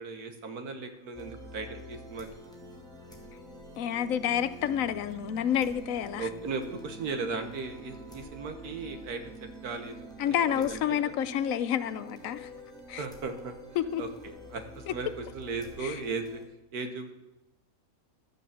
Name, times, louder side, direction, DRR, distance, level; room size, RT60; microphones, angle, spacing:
voice 1, 0.0-2.3 6.1-9.2 9.6-9.9 10.2-11.1 13.0-13.5 14.0-16.4 16.7-17.1, right 4 dB, 80° right, 1.7 m, -37 dB
sound 1, 1.1-16.4, equal, 5° left, 2.0 m, -47 dB
voice 2, 3.8-6.3 10.2-12.5 12.9-13.0 13.8-14.0 14.9-15.0 15.8-16.0, left 9 dB, 70° left, 1.0 m, -29 dB
11.5 x 6.9 x 7.3 m
omnidirectional pair, 1.6 m